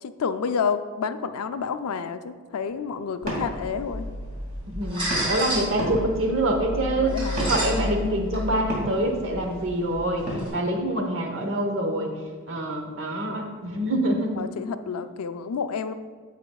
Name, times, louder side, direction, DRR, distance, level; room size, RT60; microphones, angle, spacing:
voice 1, 0.0-4.1 6.9-7.4 14.4-15.9, left 6 dB, 85° left, 10 dB, 0.4 m, -29 dB
sound 1, 2.5-14.6, right 1 dB, 40° right, 2.3 m, -38 dB
sound 2, 3.2-10.5, equal, 25° right, 2.2 m, -32 dB
voice 2, 4.7-12.1 12.5-14.4, right 1 dB, 60° right, 3 dB, 1.0 m, -26 dB
14.5 x 5.0 x 2.3 m, 1.5 s
head